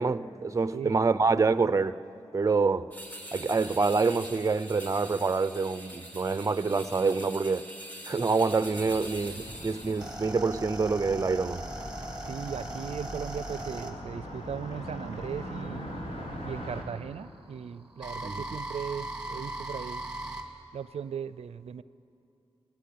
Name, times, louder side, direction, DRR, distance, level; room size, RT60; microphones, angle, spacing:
voice 1, 0.0-2.0 2.3-2.9 3.3-7.6 8.1-11.6 18.2-18.6, right 4 dB, 30° right, 0.6 m, -26 dB
sound 1, 2.9-10.2, equal, 15° left, 3.3 m, -44 dB
Car passing by, 8.7-16.8, equal, 70° left, 4.3 m, -41 dB
sound 2, 9.4-15.6 16.6-20.4, right 1 dB, 10° right, 2.4 m, -39 dB
voice 2, 12.3-15.9 16.4-20.0 20.7-21.8, right 7 dB, 85° right, 0.4 m, -38 dB
27.5 x 18.0 x 8.6 m
wide cardioid pair, 125°, 10 cm